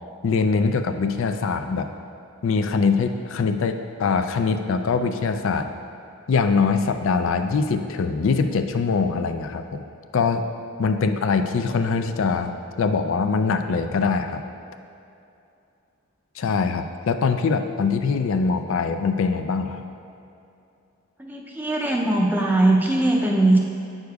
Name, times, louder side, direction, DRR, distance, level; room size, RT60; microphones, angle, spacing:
voice 1, 0.2-1.9 2.4-5.7 6.3-9.8 10.1-10.5 10.8-14.4 16.4-19.9, left 4 dB, 70° left, 7 dB, 0.4 m, -23 dB
voice 2, 21.2-23.6, right 2 dB, 10° right, -1 dB, 0.5 m, -20 dB
9.2 x 6.5 x 2.3 m, 2.6 s
head